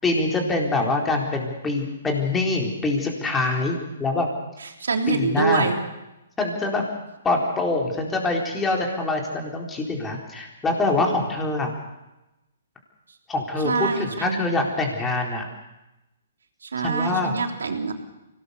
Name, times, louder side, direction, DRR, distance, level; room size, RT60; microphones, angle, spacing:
voice 1, 0.0-4.3 5.1-5.7 6.4-6.8 7.2-11.7 13.3-15.5 16.8-17.4, left 2 dB, 10° left, 1 dB, 4.1 m, -24 dB
voice 2, 4.8-5.8 13.6-14.4 16.6-17.9, right 4 dB, 85° right, 4 dB, 3.4 m, -25 dB
24.0 x 18.5 x 7.0 m, 0.96 s
hypercardioid pair, 140°, 0 cm